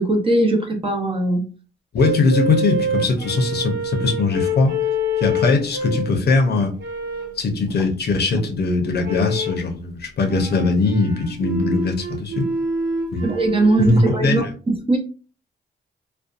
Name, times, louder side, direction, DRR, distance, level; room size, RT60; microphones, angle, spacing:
voice 1, 0.0-1.4 13.2-15.0, right 2 dB, 30° right, 2 dB, 0.8 m, -20 dB
voice 2, 1.9-4.7 5.2-6.7 7.4-12.5 13.1-13.3 13.8-14.5, left 3 dB, 60° left, 4 dB, 0.7 m, -20 dB
sound 1, 2.0-6.2 6.8-7.4 9.0-9.7 10.2-14.2, equal, 65° right, 0.9 m, -26 dB
2.6 x 2.2 x 2.4 m, 0.37 s
cardioid pair, 80°, 19 cm